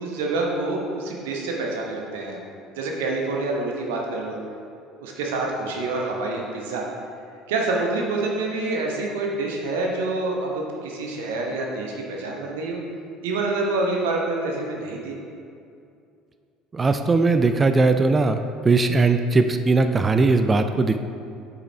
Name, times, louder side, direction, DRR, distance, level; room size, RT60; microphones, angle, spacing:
voice 1, 0.0-2.4 2.8-4.4 5.0-6.8 7.5-12.8 13.2-15.2, right 2 dB, 65° right, 0 dB, 0.8 m, -27 dB
voice 2, 16.7-21.0, right 3 dB, 25° right, 8 dB, 0.3 m, -19 dB
8.1 x 5.6 x 3.3 m, 2.4 s
figure-of-eight pair, 60°, 0 cm